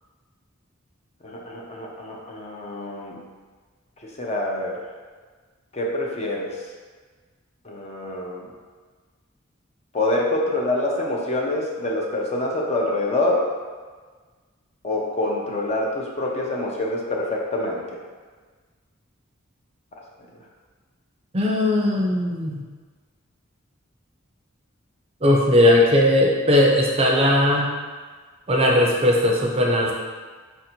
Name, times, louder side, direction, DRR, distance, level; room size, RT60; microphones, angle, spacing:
voice 1, 1.2-3.2 4.2-4.8 5.7-6.5 7.6-8.5 9.9-13.5 14.8-17.8, left 2 dB, 30° left, -2 dB, 0.6 m, -26 dB
voice 2, 21.3-22.6 25.2-27.7 28.5-29.9, left 1 dB, 30° right, -1 dB, 0.5 m, -18 dB
4.3 x 2.6 x 4.3 m, 1.5 s
head